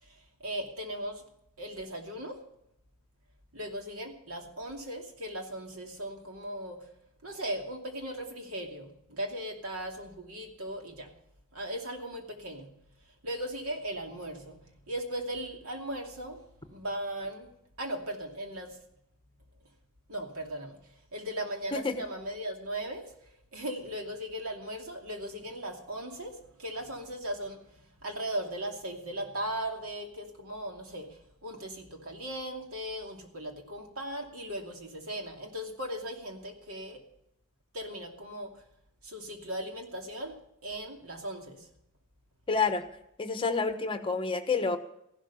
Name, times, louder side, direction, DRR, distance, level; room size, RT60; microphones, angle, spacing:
voice 1, 0.0-1.2 1.6-2.4 3.5-6.9 7.2-11.1 11.5-12.7 13.2-16.4 16.7-18.8 20.1-37.0 37.7-38.6 39.0-40.4 40.6-41.7, right 1 dB, 70° right, 3 dB, 2.6 m, -38 dB
voice 2, 42.5-42.8 43.2-44.8, left 4 dB, 25° left, 8 dB, 1.2 m, -28 dB
15.5 x 12.0 x 5.6 m, 0.78 s
head